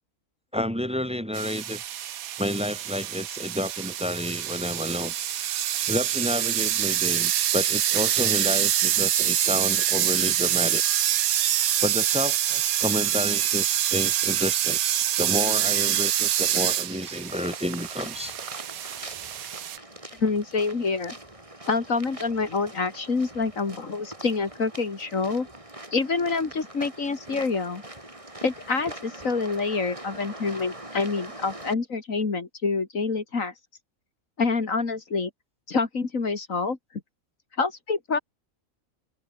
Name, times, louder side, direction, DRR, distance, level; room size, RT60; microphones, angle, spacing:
voice 1, 0.5-1.8 2.4-5.1 5.9-10.8 11.8-14.8 15.2-18.4, left 1 dB, 5° right, 2.6 m, -30 dB
sound 1, 1.3-19.8, right 11 dB, 90° right, 1.3 m, -25 dB
sound 2, 17.3-31.7, right 1 dB, 25° right, 3.9 m, -43 dB
voice 2, 20.2-21.2 21.7-25.5 25.9-27.8 28.4-33.5 34.4-35.3 35.7-36.8 37.6-38.2, left 4 dB, 70° left, 2.9 m, -27 dB
open air
omnidirectional pair, 1.5 m